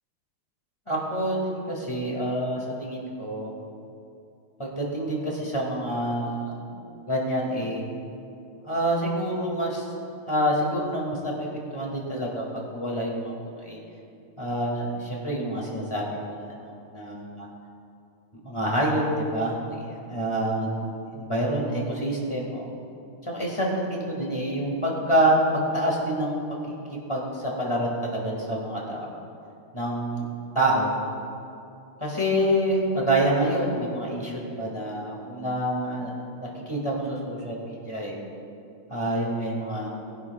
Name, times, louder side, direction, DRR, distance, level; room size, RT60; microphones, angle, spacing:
voice 1, 0.9-3.5 4.6-6.8 7.1-7.8 8.6-9.8 10.3-13.3 13.6-13.8 14.4-17.5 18.4-20.7 21.1-22.7 23.2-26.4 26.7-26.8 27.1-29.1 29.7-30.3 30.5-30.9 32.0-38.2 38.9-39.9, right 1 dB, 10° left, -3 dB, 1.8 m, -27 dB
21.0 x 11.0 x 2.4 m, 2.6 s
omnidirectional pair, 3.5 m